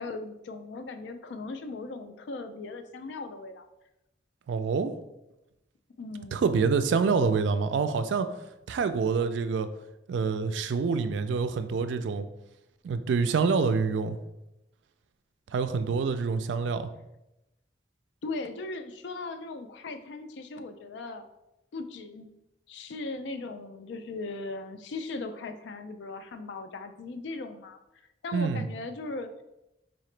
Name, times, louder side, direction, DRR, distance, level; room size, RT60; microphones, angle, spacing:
voice 1, 0.0-3.7 6.0-6.5 18.2-21.3 21.7-22.3 22.7-27.8 28.2-29.4, left 3 dB, 80° left, 8 dB, 0.4 m, -38 dB
voice 2, 4.5-4.9 6.3-8.3 8.7-9.7 10.1-12.3 12.8-14.2 15.5-16.8 28.3-28.7, right 5 dB, 85° right, 10 dB, 0.3 m, -26 dB
4.1 x 2.8 x 3.2 m, 0.91 s
head